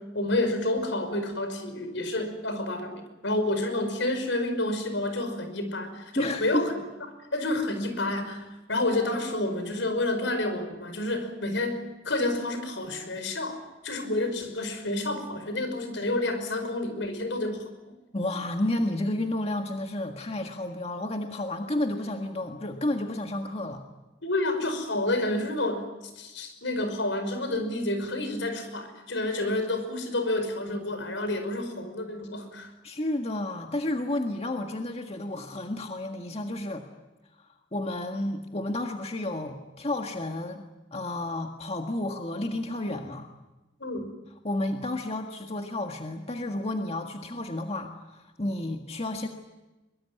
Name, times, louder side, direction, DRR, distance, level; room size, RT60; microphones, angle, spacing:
voice 1, 0.0-6.8 7.3-17.7 24.2-25.9 26.2-32.7 43.8-44.1, left 2 dB, 80° left, 8 dB, 5.4 m, -29 dB
voice 2, 6.1-6.7 18.1-23.8 32.8-36.8 37.7-40.7 40.9-43.3 44.4-49.3, left 1 dB, 35° left, 4 dB, 1.7 m, -31 dB
23.5 x 23.5 x 9.3 m, 1.1 s
head